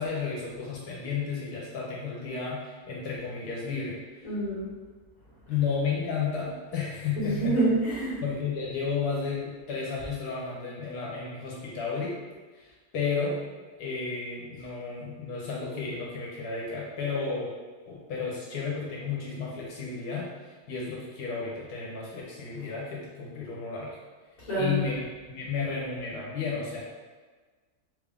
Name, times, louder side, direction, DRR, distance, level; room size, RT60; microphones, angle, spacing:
voice 1, 0.0-4.3 5.5-7.6 8.2-12.1 12.5-13.4 13.8-17.5 17.9-23.9 24.6-25.0 25.3-26.8, left 5 dB, 80° left, -4 dB, 1.2 m, -32 dB
voice 2, 4.2-4.7 7.2-8.2 24.4-24.8, right 2 dB, 30° left, -9 dB, 1.2 m, -27 dB
3.3 x 2.4 x 3.4 m, 1.4 s
omnidirectional pair, 1.7 m